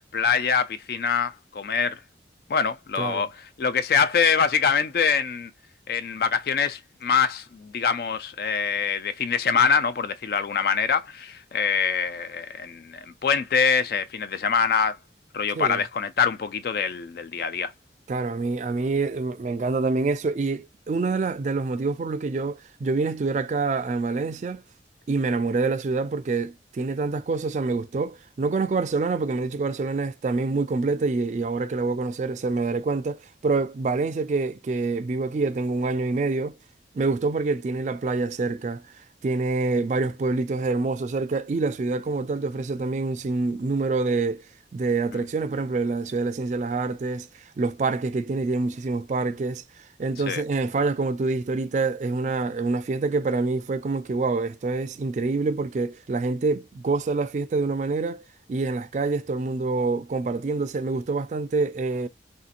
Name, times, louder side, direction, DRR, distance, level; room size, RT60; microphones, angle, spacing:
voice 1, 0.0-2.0 2.5-5.5 5.9-15.0 15.3-17.7 45.1-45.2 50.3-50.4, left 6 dB, 55° left, 0.3 m, -24 dB
voice 2, 18.1-24.6 25.1-36.5 36.9-38.8 39.2-44.4 44.7-47.3 47.6-49.6 50.0-58.2 58.5-62.1, right 3 dB, 40° right, 0.3 m, -26 dB
3.2 x 2.7 x 2.4 m
head